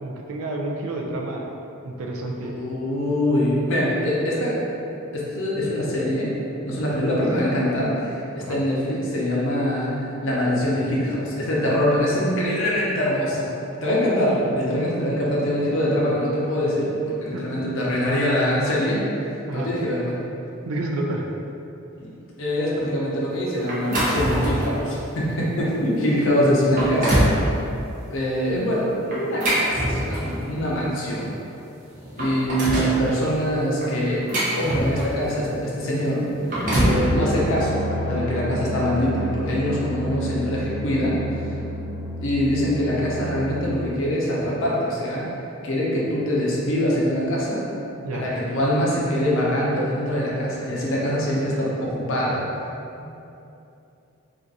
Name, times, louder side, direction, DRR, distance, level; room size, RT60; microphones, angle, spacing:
voice 1, 0.0-1.5 1.8-2.5 8.4-8.6 17.3-17.4 19.5-19.7 20.6-21.3 48.0-48.2, right 2 dB, 75° right, 1 dB, 0.4 m, -29 dB
voice 2, 2.6-4.6 5.1-6.3 6.7-19.0 19.5-20.1 22.0-22.1 22.4-27.3 28.1-31.3 32.2-34.2 34.5-36.3 36.7-41.5 42.2-45.3 45.6-47.6 48.1-52.4 53.0-53.1, equal, 65° left, -5 dB, 0.6 m, -23 dB
sound 1, 23.7-24.7 25.3-25.5 26.1-26.2 26.6-27.4 29.1-30.4 31.5-31.6 31.9-33.0 33.8-35.2 36.2-37.0, right 1 dB, 40° right, 0.6 m, -23 dB
sound 2, 36.6-43.8, equal, 10° left, 0.8 m, -30 dB
2.5 x 2.4 x 3.9 m, 2.8 s
head